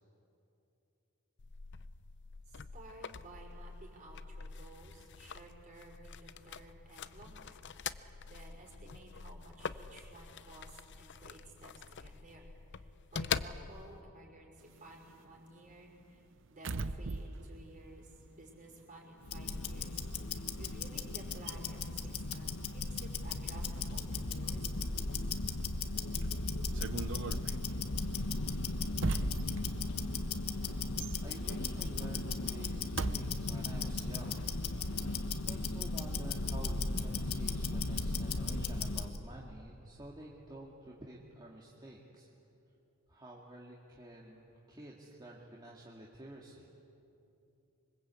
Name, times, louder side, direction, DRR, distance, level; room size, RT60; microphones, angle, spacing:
sound 1, 1.4-14.0, left 6 dB, 55° left, 0.7 m, -44 dB
voice 1, 2.5-7.6 7.9-12.5 12.7-16.2 16.5-24.6, right 2 dB, 35° right, 0 dB, 5.6 m, -55 dB
sound 2, 14.6-19.0 19.3-33.2, right 3 dB, 60° right, 0.8 m, -43 dB
Tick-tock, 19.2-39.2, left 3 dB, 90° left, 1.5 m, -36 dB
voice 2, 31.2-34.5 34.8-34.9 35.4-42.3 43.1-46.7, right 1 dB, 20° right, -3 dB, 2.2 m, -50 dB
26.0 x 24.5 x 8.4 m, 2.8 s
head